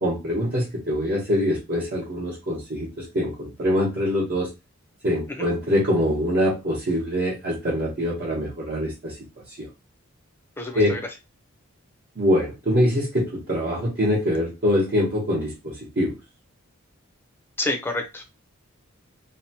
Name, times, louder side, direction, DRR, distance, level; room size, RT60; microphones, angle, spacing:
voice 1, 0.0-4.5 5.0-9.2 9.6-9.7 10.7-11.0 12.2-16.2, equal, 50° right, -7 dB, 0.9 m, -24 dB
voice 2, 10.6-11.0 17.6-18.2, left 2 dB, 10° left, 3 dB, 0.5 m, -29 dB
2.8 x 2.1 x 2.7 m, 0.25 s
head